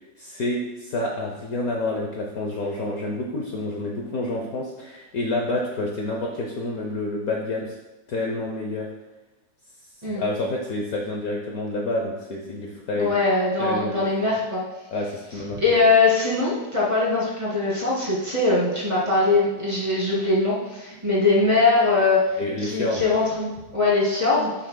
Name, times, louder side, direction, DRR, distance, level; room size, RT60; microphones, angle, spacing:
voice 1, 0.2-7.8 8.1-8.9 10.1-13.2 13.6-14.0 14.9-15.8 22.4-23.1, left 2 dB, 60° left, 0 dB, 1.2 m, -28 dB
voice 2, 13.0-14.6 15.6-24.5, left 3 dB, 15° right, -7 dB, 2.4 m, -21 dB
11.5 x 6.4 x 2.2 m, 1.1 s
omnidirectional pair, 2.0 m